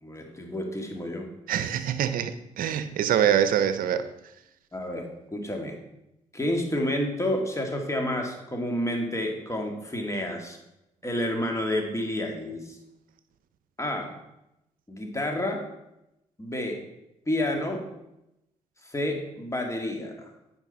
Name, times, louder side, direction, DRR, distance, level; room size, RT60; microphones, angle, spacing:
voice 1, 0.0-1.3 4.7-5.8 6.3-10.6 11.0-12.8 13.8-14.1 14.9-15.6 16.4-16.8 17.3-17.8 18.8-20.3, left 1 dB, 20° left, 2.1 m, -30 dB
voice 2, 1.5-4.1, right 9 dB, 70° right, 0.6 m, -25 dB
9.0 x 5.3 x 4.1 m
supercardioid pair, 50°, 15 cm